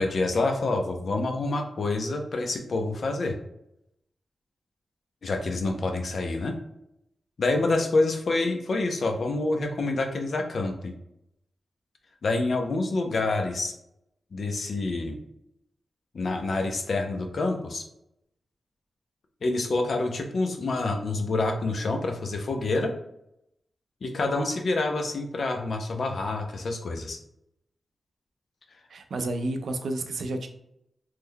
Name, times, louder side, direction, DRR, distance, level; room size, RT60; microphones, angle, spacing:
voice 1, 0.0-3.4 5.2-6.6 7.4-10.9 12.2-13.7 14.3-15.2 16.1-17.8 19.4-22.9 24.0-27.2, left 2 dB, 60° left, 4 dB, 0.5 m, -27 dB
voice 2, 28.9-30.5, right 2 dB, 90° right, 6 dB, 0.4 m, -30 dB
3.1 x 2.1 x 3.6 m, 0.81 s
wide cardioid pair, 135°, 0 cm